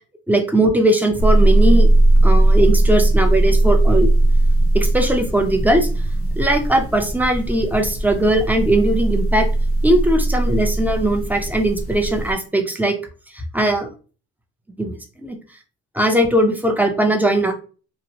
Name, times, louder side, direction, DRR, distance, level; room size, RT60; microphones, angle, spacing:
voice 1, 0.3-1.9 2.2-4.1 4.7-5.9 6.4-9.5 9.8-13.0 13.3-13.9 14.8-15.4 15.9-17.5, right 1 dB, 5° right, 4 dB, 0.6 m, -19 dB
sound 1, 1.2-12.3, right 1 dB, 50° left, 0.6 m, -18 dB
3.0 x 2.1 x 2.8 m, 0.36 s
cardioid pair, 90°, 30 cm